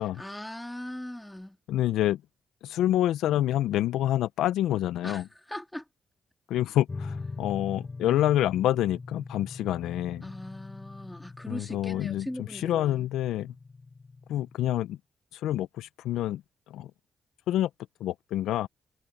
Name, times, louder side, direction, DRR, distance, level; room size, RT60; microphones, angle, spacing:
voice 1, 0.1-1.6 5.0-5.2 5.5-5.8 10.2-13.1, left 1 dB, 10° left, 3.0 m, -39 dB
voice 2, 1.7-2.2 2.6-5.3 6.5-10.3 11.5-13.5 14.3-15.0 15.3-16.4 16.7-16.9 17.5-17.7 18.0-18.7, left 13 dB, 75° left, 0.8 m, -27 dB
sound 1, 6.9-14.5, left 4 dB, 35° left, 7.6 m, -42 dB
hypercardioid pair, 45°, 0 cm